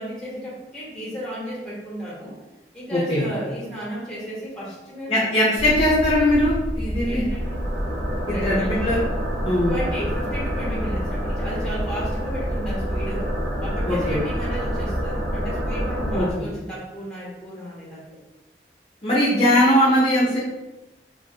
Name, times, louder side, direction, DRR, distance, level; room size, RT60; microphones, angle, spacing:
voice 1, 0.0-2.3 2.7-5.2 7.1-7.6 8.3-8.9 9.7-18.2, equal, 5° left, -7 dB, 1.2 m, -34 dB
voice 2, 2.9-3.3 5.1-7.3 8.3-9.0 9.4-9.7 13.9-14.2 16.1-16.3 19.0-20.4, left 1 dB, 35° left, -7 dB, 0.7 m, -20 dB
sound 1, 5.5-16.3, equal, 60° right, 0.9 m, -27 dB
3.1 x 2.5 x 4.1 m, 1.1 s
head